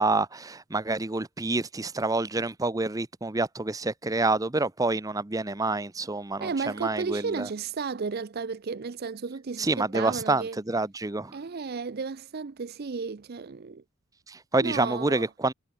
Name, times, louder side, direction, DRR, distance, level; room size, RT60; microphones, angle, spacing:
voice 1, 0.0-7.5 9.6-11.4 14.3-15.5, right 2 dB, 15° right, 0.7 m, -27 dB
voice 2, 6.4-10.6 11.3-13.8 14.6-15.3, right 5 dB, 50° right, 0.5 m, -33 dB
head